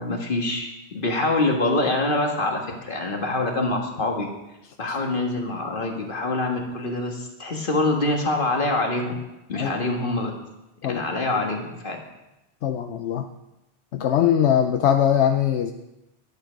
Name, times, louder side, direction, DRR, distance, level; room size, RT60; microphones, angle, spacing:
voice 1, 0.0-4.3 4.8-9.2 9.5-10.3 10.9-12.0, left 2 dB, 50° left, 2 dB, 1.8 m, -25 dB
voice 2, 12.6-13.3 13.9-15.7, left 9 dB, 80° left, 6 dB, 0.9 m, -21 dB
11.0 x 9.3 x 5.1 m, 0.96 s
omnidirectional pair, 1.1 m